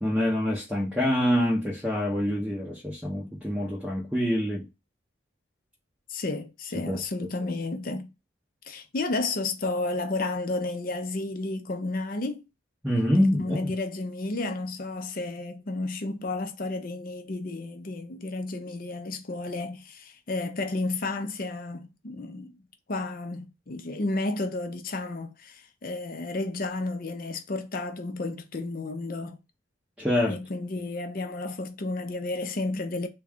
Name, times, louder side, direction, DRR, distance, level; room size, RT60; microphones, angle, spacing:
voice 1, 0.0-4.7 6.7-7.3 12.8-13.7 30.0-30.4, equal, 5° right, 0.6 m, -26 dB
voice 2, 6.1-8.1 8.7-12.4 13.1-22.5 22.9-29.4 30.3-33.1, left 2 dB, 45° left, 0.5 m, -32 dB
3.6 x 2.2 x 3.5 m
head